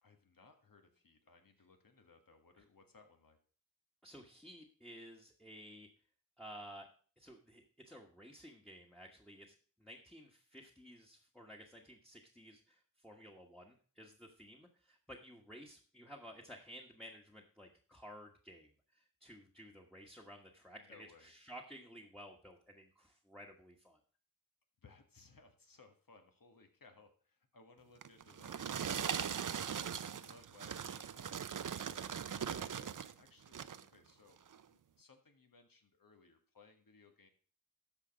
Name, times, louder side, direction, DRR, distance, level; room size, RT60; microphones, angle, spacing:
voice 1, 0.0-3.4 20.8-21.3 24.8-37.3, left 3 dB, 80° left, 5 dB, 1.6 m, -63 dB
voice 2, 4.0-5.9 6.4-6.9 7.2-24.0, equal, ahead, -1 dB, 1.3 m, -54 dB
sound 1, 28.0-33.1 33.5-33.9 34.5-34.6, right 8 dB, 65° right, 0.5 m, -40 dB
13.0 x 5.0 x 5.1 m, 0.42 s
wide cardioid pair, 70°, 33 cm